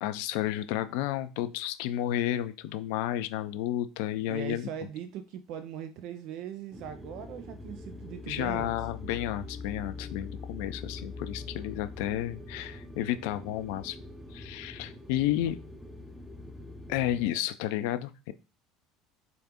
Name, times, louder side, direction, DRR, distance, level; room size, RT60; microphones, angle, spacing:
voice 1, 0.0-4.7 8.3-14.0 14.3-15.6 16.9-18.3, left 13 dB, 65° left, 12 dB, 0.3 m, -31 dB
voice 2, 4.3-8.7 15.4-15.5, right 9 dB, 55° right, 10 dB, 0.3 m, -40 dB
sound 1, 6.7-17.3, left 3 dB, ahead, 0.7 m, -43 dB
3.8 x 3.3 x 2.9 m, 0.32 s
figure-of-eight pair, 70°, 0 cm